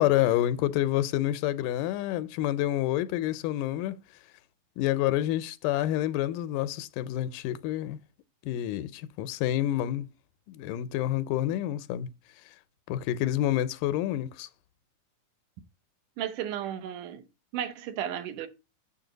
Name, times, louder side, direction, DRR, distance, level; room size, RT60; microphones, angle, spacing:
voice 1, 0.0-4.0 4.8-8.0 8.4-10.1 10.5-12.1 12.9-14.5, left 13 dB, 90° left, 2.2 m, -28 dB
voice 2, 16.2-17.2 17.5-18.5, right 10 dB, 80° right, 2.4 m, -34 dB
7.3 x 6.9 x 3.9 m
omnidirectional pair, 3.7 m